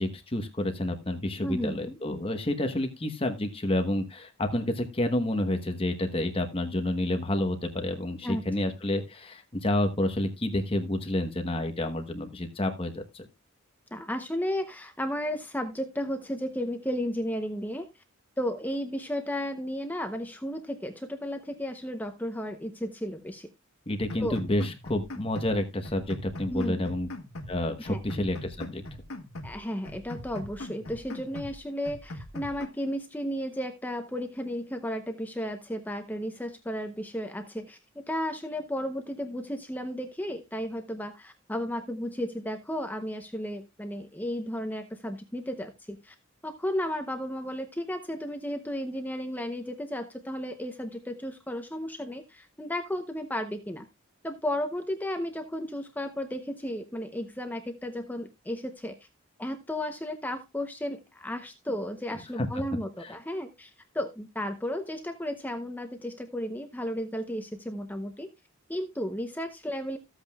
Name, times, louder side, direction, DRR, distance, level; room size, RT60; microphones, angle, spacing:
voice 1, 0.0-13.3 23.9-27.1 27.5-28.8 62.4-62.5 63.0-63.2, left 1 dB, 25° left, 6 dB, 1.1 m, -29 dB
voice 2, 1.4-2.0 8.2-8.4 13.9-17.9 18.4-23.5 24.2-24.4 26.5-26.8 27.8-28.0 29.4-46.1 46.4-53.9 54.2-59.0 59.4-68.3 68.7-70.0, equal, 10° left, 6 dB, 0.7 m, -34 dB
sound 1, 24.1-25.6 25.8-27.6 27.8-29.6 29.8-31.6 31.8-32.7, left 1 dB, 90° left, 1.4 m, -41 dB
14.5 x 8.1 x 2.3 m, 0.22 s
head